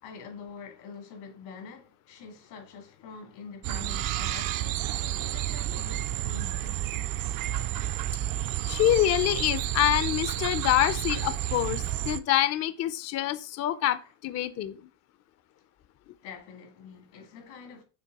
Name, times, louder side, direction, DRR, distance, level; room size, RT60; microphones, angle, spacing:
voice 1, 0.0-6.8 8.2-8.4 14.0-14.1 15.6-15.7 16.2-17.8, left 5 dB, 90° left, 2.4 m, -46 dB
sound 1, 3.6-12.2, right 13 dB, 55° right, 0.5 m, -31 dB
voice 2, 8.7-14.8, left 12 dB, 40° left, 0.4 m, -26 dB
6.9 x 3.2 x 4.6 m
cardioid pair, 120°, 43 cm